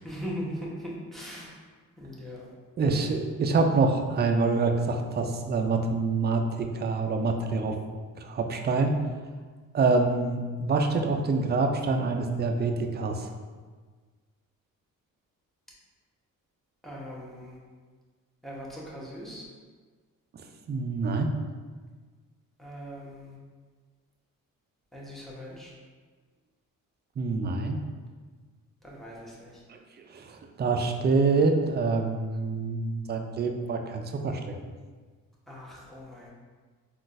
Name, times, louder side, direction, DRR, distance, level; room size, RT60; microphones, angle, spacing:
voice 1, 0.0-1.5 2.0-2.5 16.8-17.6 18.4-19.5 22.6-23.3 24.9-25.7 28.8-29.6 35.5-36.3, equal, ahead, -5 dB, 0.9 m, -40 dB
voice 2, 2.8-7.8 8.2-9.0 9.7-13.3 20.3-21.3 27.2-27.8 29.7-29.8 30.1-34.5, right 3 dB, 30° right, 4 dB, 0.4 m, -26 dB
3.7 x 2.4 x 2.5 m, 1.5 s
cardioid pair, 70°, 35 cm